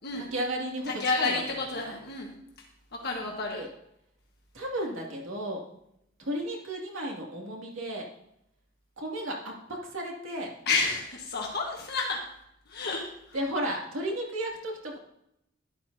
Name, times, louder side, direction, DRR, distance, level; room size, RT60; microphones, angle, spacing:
voice 1, 0.2-1.4 1.7-1.9 3.5-3.7 4.5-5.6 6.2-8.1 9.0-9.5 9.9-10.6 13.3-15.0, right 1 dB, 75° right, -1 dB, 2.4 m, -33 dB
voice 2, 0.9-2.3 3.0-3.6 10.7-12.2 12.7-13.0, left 4 dB, 55° left, -1 dB, 1.4 m, -30 dB
12.0 x 11.0 x 2.8 m, 0.79 s
head